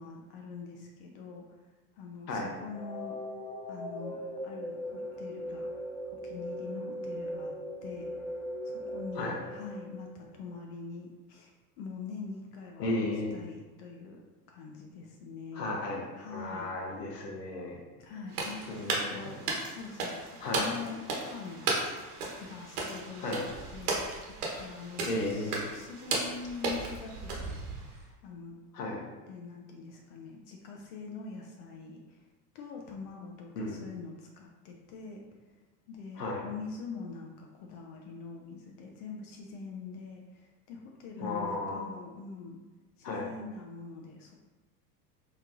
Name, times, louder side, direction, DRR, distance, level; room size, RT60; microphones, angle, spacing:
voice 1, 0.0-1.4 2.0-3.2 3.7-4.2 4.4-5.7 6.1-7.5 7.8-8.1 8.6-13.0 13.3-14.2 14.5-15.8 16.2-16.7 18.0-21.7 22.4-24.0 24.3-28.6 29.3-32.2 32.5-35.2 35.9-42.6 43.0-44.3, left 4 dB, 55° left, 1 dB, 0.7 m, -44 dB
sound 1, 2.7-10.6, equal, 10° left, 0.6 m, -39 dB
voice 2, 12.8-13.4 15.5-17.8 18.7-19.3 20.4-20.7 23.2-23.5 25.1-25.6 28.7-29.0 33.6-33.8 36.2-36.4 41.2-41.8 43.0-43.3, left 2 dB, 80° left, -1 dB, 1.1 m, -34 dB
sound 2, 18.3-28.0, right 3 dB, 70° right, 1.2 m, -35 dB
4.4 x 3.0 x 2.5 m, 1.2 s
hypercardioid pair, 85°, 48 cm